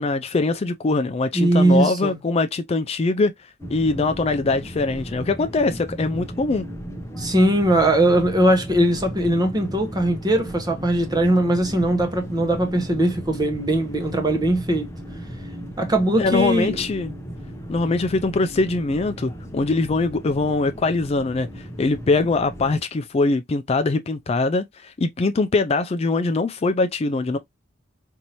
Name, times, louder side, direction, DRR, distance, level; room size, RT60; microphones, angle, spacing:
voice 1, 0.0-3.3 3.7-6.7 16.2-17.1 17.7-27.4, left 3 dB, 30° left, 0.4 m, -22 dB
voice 2, 1.3-2.2 7.2-14.9 15.8-16.8, right 1 dB, 20° right, 1.0 m, -20 dB
sound 1, 3.6-22.8, equal, 15° left, 0.7 m, -36 dB
4.6 x 2.7 x 2.9 m
head